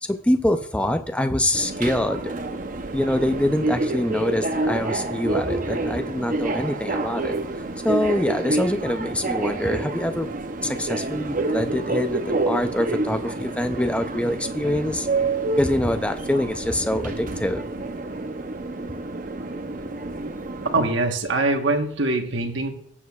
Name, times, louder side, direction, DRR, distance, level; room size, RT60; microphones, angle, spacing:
voice 1, 0.0-2.3 2.9-7.4 7.8-10.3 10.6-15.1 15.5-17.7, left 1 dB, 5° left, 8 dB, 0.4 m, -25 dB
Subway metro underground, 1.5-20.9, right 2 dB, 40° right, 0.7 m, -28 dB
voice 2, 20.7-22.7, right 2 dB, 70° right, 4 dB, 1.2 m, -23 dB
17.0 x 7.3 x 2.3 m, 0.68 s
head